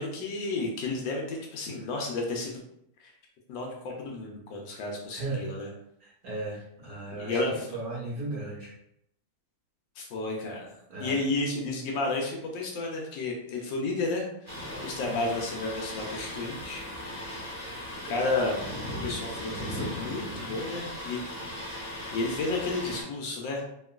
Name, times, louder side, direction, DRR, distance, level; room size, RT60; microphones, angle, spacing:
voice 1, 0.0-2.6 3.0-3.1 3.5-5.7 7.1-7.5 10.0-16.8 18.0-18.6 19.0-21.2 21.8-23.6, left 2 dB, 75° left, 0 dB, 1.1 m, -32 dB
voice 2, 5.1-5.5 6.0-8.7 10.9-11.2 15.0-15.3, right 2 dB, 65° right, -6 dB, 1.0 m, -36 dB
Thunder, 14.5-23.0, left 1 dB, 10° right, 0.9 m, -37 dB
2.9 x 2.9 x 2.3 m, 0.76 s
omnidirectional pair, 2.4 m